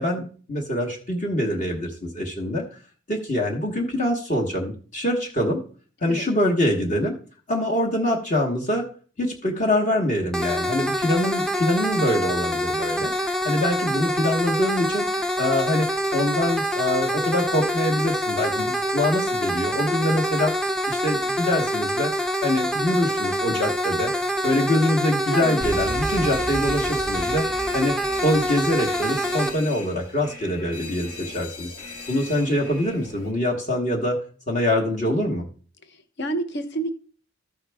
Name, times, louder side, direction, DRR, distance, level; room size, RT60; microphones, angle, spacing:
voice 1, 0.0-2.6 3.1-5.6 6.0-7.2 7.5-8.9 9.2-15.1 15.4-15.9 16.1-20.5 20.9-22.1 22.4-24.1 24.4-27.5 27.7-31.7 32.1-34.2 34.5-35.5, left 1 dB, 35° left, -1 dB, 1.2 m, -24 dB
sound 1, 10.3-29.5, equal, 5° left, 0.5 m, -26 dB
voice 2, 25.3-25.6 35.9-37.0, right 2 dB, 55° left, 9 dB, 0.9 m, -29 dB
Alarm, 25.6-33.3, left 1 dB, 85° left, 1.6 m, -36 dB
13.5 x 5.7 x 3.4 m, 0.40 s
head